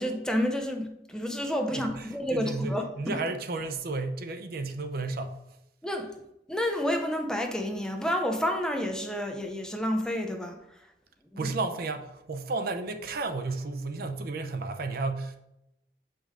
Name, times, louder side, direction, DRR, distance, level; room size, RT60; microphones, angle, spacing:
voice 1, 0.0-3.1 5.8-6.1 6.5-10.6 11.4-11.5, equal, 5° left, 3 dB, 0.6 m, -30 dB
voice 2, 1.7-5.4 11.4-15.4, right 3 dB, 55° right, 6 dB, 0.6 m, -33 dB
6.7 x 5.2 x 3.7 m, 0.86 s
head